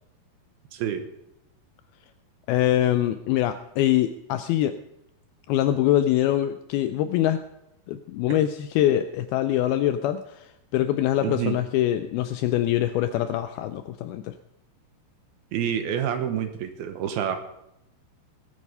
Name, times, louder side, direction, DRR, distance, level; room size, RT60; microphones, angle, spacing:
voice 1, 0.7-1.1 8.3-8.4 11.2-11.6 15.5-17.4, right 9 dB, 75° right, 8 dB, 2.7 m, -28 dB
voice 2, 2.5-4.8 5.5-7.4 7.9-14.4, left 12 dB, 85° left, 10 dB, 2.2 m, -24 dB
19.5 x 8.5 x 5.5 m, 0.84 s
omnidirectional pair, 4.9 m